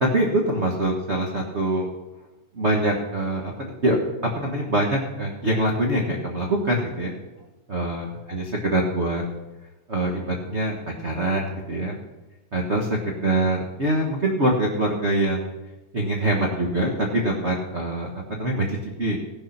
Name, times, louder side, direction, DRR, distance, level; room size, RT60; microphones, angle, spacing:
voice 1, 0.0-1.9 2.6-4.0 4.3-7.1 7.7-9.2 9.9-10.8 11.0-11.9 12.5-12.9 13.2-15.5 15.9-19.2, right 1 dB, 50° right, 0 dB, 0.8 m, -24 dB
16.5 x 6.5 x 5.8 m, 1.1 s
omnidirectional pair, 3.4 m